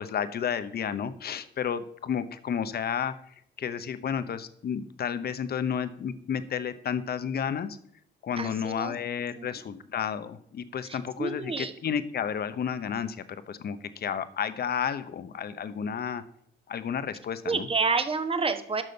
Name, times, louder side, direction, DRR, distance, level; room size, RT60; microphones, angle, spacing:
voice 1, 0.0-7.8 8.2-16.2 16.7-17.7, left 8 dB, 55° left, 12 dB, 0.9 m, -32 dB
voice 2, 8.4-8.9 9.4-9.5 10.8-11.7 17.4-18.8, right 4 dB, 30° right, 8 dB, 1.3 m, -29 dB
12.0 x 6.3 x 5.4 m, 0.65 s
cardioid pair, 90°, 20 cm